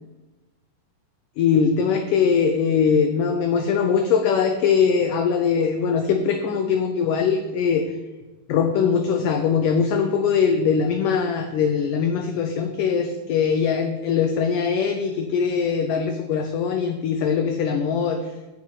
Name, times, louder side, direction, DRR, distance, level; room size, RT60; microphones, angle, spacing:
voice 1, 1.4-7.8 8.5-18.2, left 6 dB, 75° left, 5 dB, 1.9 m, -21 dB
9.0 x 7.8 x 5.6 m, 1.1 s
omnidirectional pair, 4.6 m